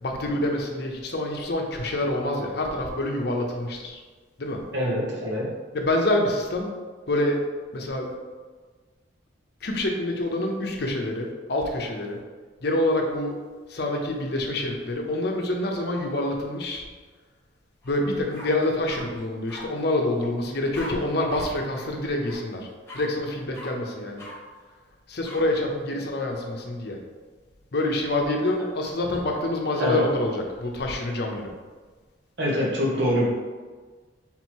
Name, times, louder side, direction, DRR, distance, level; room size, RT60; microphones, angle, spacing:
voice 1, 0.0-4.0 4.4-4.6 5.7-6.7 7.1-7.4 7.7-8.1 9.6-12.2 12.6-13.4 13.7-16.9 17.8-22.7 22.9-24.2 25.1-27.0 27.7-31.5, left 1 dB, 55° left, 1 dB, 0.7 m, -26 dB
voice 2, 4.7-5.5 29.8-30.0 32.4-33.3, equal, 65° right, -4 dB, 1.1 m, -24 dB
sound 1, 17.8-18.0 18.3-19.0 19.5-19.6 20.7-20.9 21.3-21.4 21.7-21.9 22.2-22.4 22.9-23.0 23.5-23.7 24.2-24.3 25.2-25.4, left 1 dB, 15° left, 0.9 m, -41 dB
3.8 x 2.9 x 4.5 m, 1.4 s
head